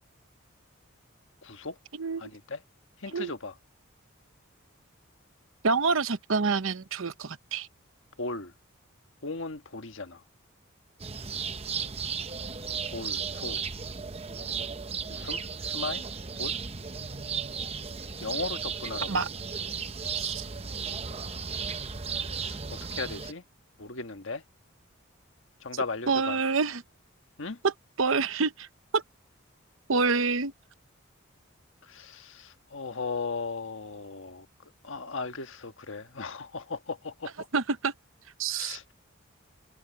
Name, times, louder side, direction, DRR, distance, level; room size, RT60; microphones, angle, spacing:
voice 1, 1.4-1.8 2.2-2.6 3.0-3.5 8.2-8.5 9.2-10.2 12.9-13.6 15.1-16.0 16.4-16.6 18.2-19.1 22.4-23.4 23.8-24.4 25.6-26.4 27.4-27.6 31.8-34.5 34.8-37.5 38.5-38.9, left 3 dB, 65° left, 1.5 m, -37 dB
voice 2, 1.9-2.3 3.1-3.3 5.6-7.7 19.1-19.3 20.1-20.4 25.7-26.8 27.6-27.7 28.0-28.7 28.9-29.0 29.9-30.5 37.5-37.9 38.4-38.8, right 4 dB, 70° right, 0.9 m, -27 dB
sound 1, 11.0-23.3, right 6 dB, 30° right, 0.8 m, -35 dB
head